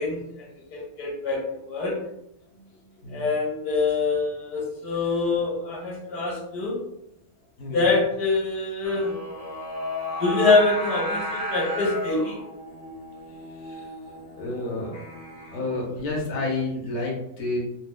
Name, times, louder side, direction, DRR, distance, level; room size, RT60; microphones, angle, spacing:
voice 1, 0.0-2.0 3.1-6.8 7.7-9.2 10.2-12.4, left 3 dB, 80° left, -3 dB, 1.5 m, -25 dB
Singing, 8.8-16.0, equal, 30° left, 0.9 m, -34 dB
voice 2, 14.4-14.9 15.5-17.6, left 2 dB, 55° left, -2 dB, 1.2 m, -30 dB
4.2 x 2.6 x 2.2 m, 0.79 s
omnidirectional pair, 1.6 m